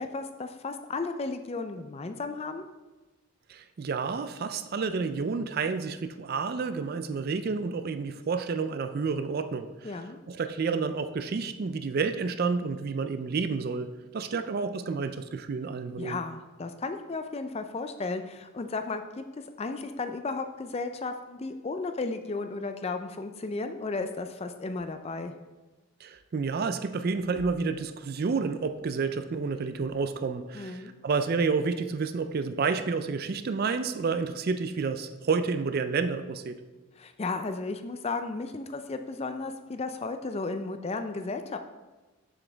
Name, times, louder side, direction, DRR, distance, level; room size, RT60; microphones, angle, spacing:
voice 1, 0.0-2.6 9.8-10.2 14.3-14.4 16.0-19.2 19.6-25.4 30.5-30.9 37.0-41.6, left 3 dB, 25° left, 8 dB, 0.4 m, -34 dB
voice 2, 3.5-9.9 10.3-13.9 14.1-16.2 26.0-36.6, right 4 dB, 45° right, 10 dB, 0.3 m, -30 dB
7.2 x 7.1 x 3.4 m, 1.2 s
head